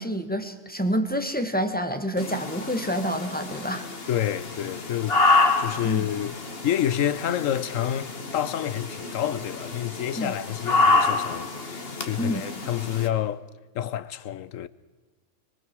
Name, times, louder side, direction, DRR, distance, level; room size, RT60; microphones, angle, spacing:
voice 1, 0.0-3.9 5.8-6.1 10.2-10.4 12.2-12.5, equal, 5° left, 1.6 m, -28 dB
sound 1, 2.2-13.1, left 3 dB, 45° left, 2.0 m, -27 dB
voice 2, 4.1-6.4 6.6-13.5 13.7-14.7, left 11 dB, 70° left, 1.2 m, -29 dB
25.0 x 23.5 x 4.7 m
omnidirectional pair, 1.5 m